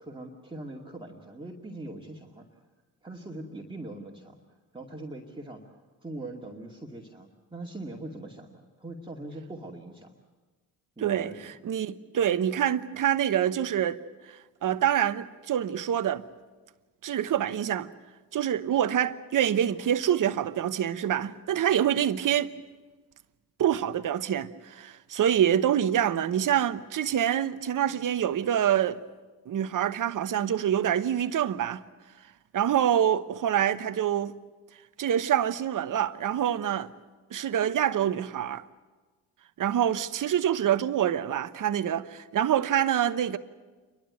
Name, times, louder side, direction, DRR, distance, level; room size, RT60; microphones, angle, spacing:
voice 1, 0.0-2.5 3.0-4.4 4.7-5.6 6.0-10.1 11.0-11.6, right 2 dB, 15° right, 2.3 m, -41 dB
voice 2, 11.0-14.0 14.6-16.2 17.0-17.9 18.3-22.5 23.6-29.0 29.5-31.8 32.5-34.3 35.0-36.9 37.3-38.6 39.6-43.4, right 10 dB, 55° right, 1.1 m, -26 dB
28.0 x 12.0 x 9.5 m
supercardioid pair, 65°, 39 cm